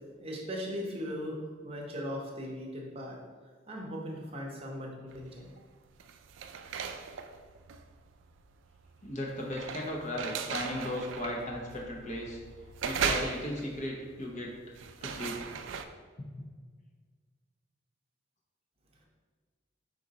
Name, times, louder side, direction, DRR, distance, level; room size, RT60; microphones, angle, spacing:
voice 1, 0.2-3.2 3.7-5.5, equal, 30° right, -2 dB, 0.7 m, -38 dB
sound 1, 5.1-5.5 5.9-15.9, right 6 dB, 85° right, 0.3 m, -38 dB
voice 2, 9.0-12.4 12.8-14.5 15.0-15.5 16.2-16.3, left 1 dB, 40° left, -2 dB, 0.8 m, -36 dB
4.7 x 2.6 x 3.9 m, 1.6 s
head